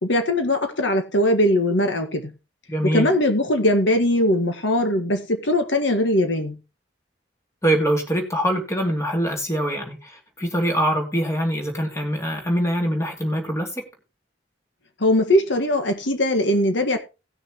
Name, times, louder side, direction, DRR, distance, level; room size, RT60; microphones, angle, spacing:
voice 1, 0.0-2.3 2.9-6.6 15.0-17.0, left 1 dB, 80° left, 1.7 m, -20 dB
voice 2, 2.7-3.1 7.6-13.7, equal, 15° left, 2.7 m, -23 dB
18.5 x 6.5 x 3.0 m
head